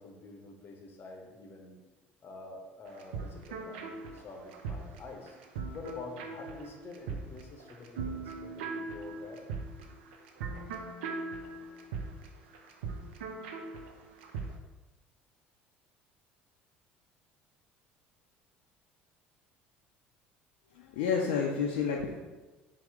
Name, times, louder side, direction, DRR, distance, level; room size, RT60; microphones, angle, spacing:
voice 1, 0.0-1.8 2.2-5.4 5.7-9.4, left 3 dB, 40° left, 2 dB, 0.7 m, -47 dB
sound 1, 2.9-14.5, right 4 dB, 70° right, 0.4 m, -40 dB
voice 2, 20.7-22.2, left 6 dB, 65° left, -1 dB, 0.4 m, -30 dB
4.3 x 2.0 x 3.6 m, 1.2 s
figure-of-eight pair, 60°, 6 cm